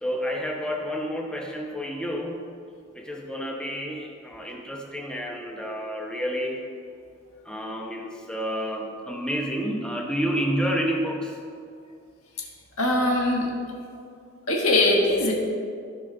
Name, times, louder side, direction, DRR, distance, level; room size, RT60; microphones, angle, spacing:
voice 1, 0.0-2.4 2.9-6.6 7.4-11.4, equal, 5° left, 0 dB, 0.9 m, -29 dB
voice 2, 12.8-13.5 14.5-15.3, left 2 dB, 90° left, -1 dB, 1.5 m, -21 dB
14.5 x 5.1 x 3.9 m, 2.3 s
head